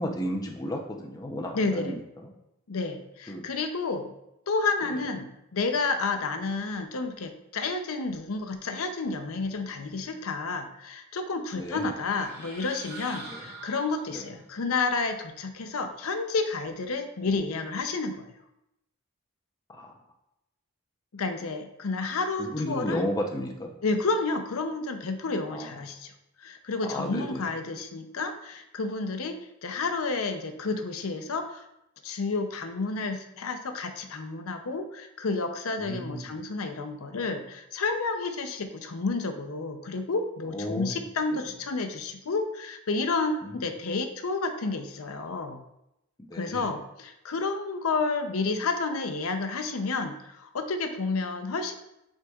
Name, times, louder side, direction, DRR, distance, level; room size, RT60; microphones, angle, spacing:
voice 1, 0.0-2.3 3.3-3.5 4.8-5.0 11.5-11.9 13.3-13.5 14.1-14.3 19.7-19.9 22.4-23.7 25.5-25.7 26.8-27.4 35.8-36.4 40.5-41.0 41.3-41.4 43.4-43.6 46.2-46.7, equal, 15° left, 1 dB, 0.6 m, -33 dB
voice 2, 1.5-1.9 2.7-4.1 4.5-18.3 21.1-23.1 23.8-26.1 26.4-29.4 29.6-31.7 32.0-45.6 46.4-51.7, left 3 dB, 75° left, 6 dB, 0.6 m, -30 dB
sound 1, 11.8-14.4, right 2 dB, 40° right, 1.5 m, -45 dB
8.8 x 4.6 x 2.4 m, 0.86 s
head